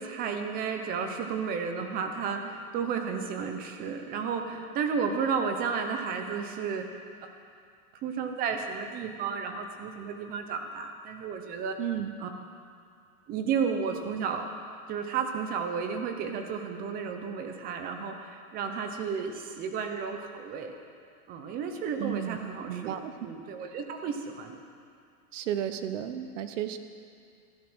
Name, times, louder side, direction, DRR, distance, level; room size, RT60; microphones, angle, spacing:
voice 1, 0.0-6.9 7.2-7.3 8.0-11.8 12.2-12.3 13.3-14.5 14.9-20.7 21.3-22.9 23.2-24.6, right 6 dB, 20° right, 5 dB, 0.8 m, -32 dB
voice 2, 11.8-12.1 22.0-22.4 22.7-23.1 25.3-26.8, right 10 dB, 55° right, 9 dB, 1.1 m, -33 dB
13.5 x 11.0 x 6.2 m, 2.4 s
supercardioid pair, 160°, 44 cm